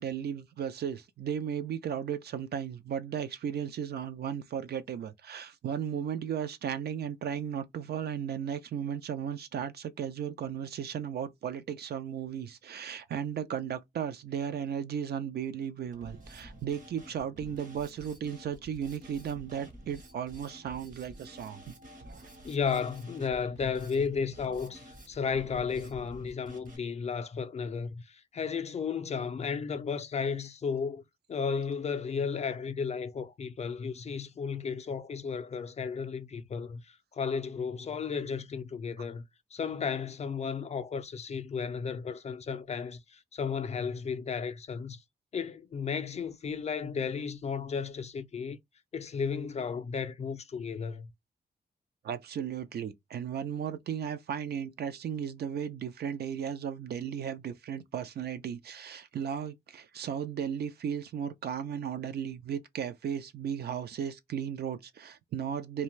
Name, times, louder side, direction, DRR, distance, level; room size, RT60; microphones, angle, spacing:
voice 1, 0.0-21.7 22.0-22.3 39.0-39.1 52.0-65.8, right 8 dB, 65° right, 0.4 m, -35 dB
Drum kit, 15.9-26.8, right 1 dB, 50° right, 0.9 m, -50 dB
voice 2, 22.4-31.0 31.3-39.2 39.5-45.0 45.3-48.6 48.9-51.1, left 6 dB, 40° left, 0.4 m, -34 dB
2.5 x 2.2 x 3.0 m
wide cardioid pair, 150°, 18 cm